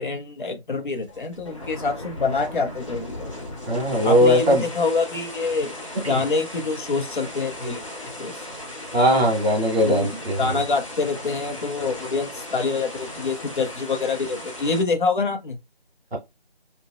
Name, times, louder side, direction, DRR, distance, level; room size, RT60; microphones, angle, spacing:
voice 1, 0.0-3.3 4.0-5.7 6.1-8.5 9.8-10.1 10.4-15.6, left 4 dB, 55° left, 0.7 m, -26 dB
sound 1, 0.9-14.8, left 1 dB, 30° left, 1.1 m, -37 dB
voice 2, 3.7-4.6 6.0-6.2 8.9-10.6 16.1-16.2, equal, 75° right, 1.6 m, -19 dB
3.1 x 2.5 x 2.3 m
figure-of-eight pair, 170°, 31 cm